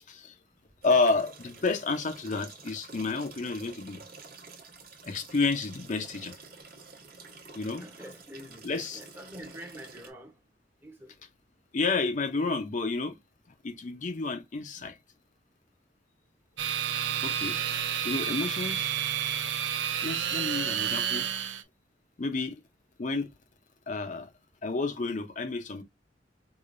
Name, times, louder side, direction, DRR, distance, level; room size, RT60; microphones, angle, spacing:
voice 1, 0.8-4.0 5.0-6.4 7.5-7.8 8.6-9.0 11.7-13.2 13.6-15.0 17.2-19.0 20.0-21.3 22.2-22.5 23.0-23.3 23.9-24.3 24.6-25.8, left 3 dB, 45° left, 0.6 m, -30 dB
sound 1, 0.8-10.1, right 4 dB, 55° right, 1.0 m, -49 dB
voice 2, 7.8-10.4 10.8-11.2, equal, 15° right, 0.8 m, -46 dB
sound 2, 16.6-21.6, right 9 dB, 85° right, 0.6 m, -30 dB
4.8 x 2.4 x 2.5 m
head